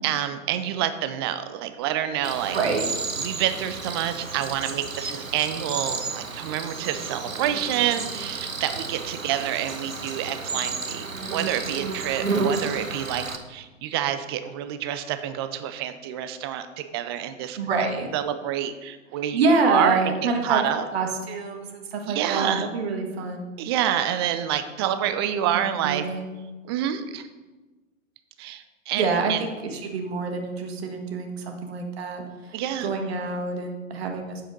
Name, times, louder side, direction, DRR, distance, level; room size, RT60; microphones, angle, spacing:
voice 1, 0.0-2.6 3.2-13.2 13.5-17.9 18.1-20.1 20.4-20.8 22.0-22.7 23.6-26.1 26.6-27.3 28.4-29.4 32.5-32.9, right 10 dB, 20° right, 10 dB, 0.4 m, -28 dB
Cricket, 2.2-13.4, right 4 dB, 80° right, 1.1 m, -32 dB
voice 2, 2.5-2.9 17.6-18.1 19.3-20.6 20.9-23.5 25.5-26.3 29.0-32.6 32.8-34.4, right 4 dB, 50° right, 3 dB, 1.6 m, -26 dB
8.5 x 7.4 x 5.3 m, 1.2 s
figure-of-eight pair, 110°, 40 cm